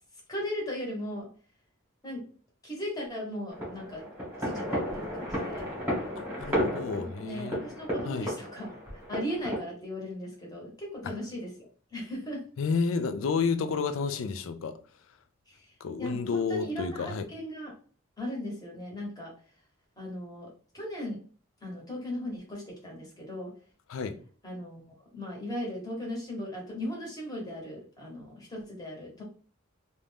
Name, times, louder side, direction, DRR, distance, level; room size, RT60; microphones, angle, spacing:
voice 1, 0.3-1.3 2.0-2.2 2.6-4.0 4.4-5.7 6.6-8.8 9.1-11.5 11.9-12.4 15.5-15.7 16.0-17.7 18.2-19.3 20.0-20.5 20.7-21.2 21.6-23.5 24.4-29.2, equal, 20° left, 1.0 m, -37 dB
sound 1, 3.5-9.6, equal, 10° right, 1.1 m, -33 dB
voice 2, 6.2-7.6 8.0-8.3 11.0-11.1 12.6-14.8 15.8-17.3 23.9-24.2, left 5 dB, 80° left, 0.4 m, -30 dB
2.5 x 2.2 x 3.3 m
head